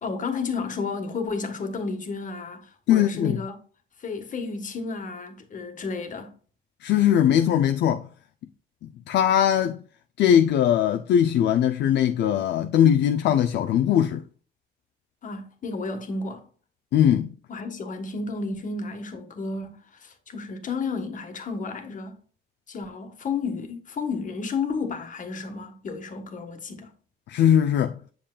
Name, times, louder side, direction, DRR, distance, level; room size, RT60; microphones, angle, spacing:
voice 1, 0.0-3.6 4.0-6.3 15.2-16.5 17.5-22.1 22.7-26.9, left 4 dB, 45° left, 1.3 m, -32 dB
voice 2, 2.9-3.4 6.8-8.1 9.1-9.8 10.2-14.2 16.9-17.3 27.3-27.9, left 9 dB, 65° left, 0.5 m, -20 dB
7.6 x 6.9 x 2.3 m
cardioid pair, 105°, 19 cm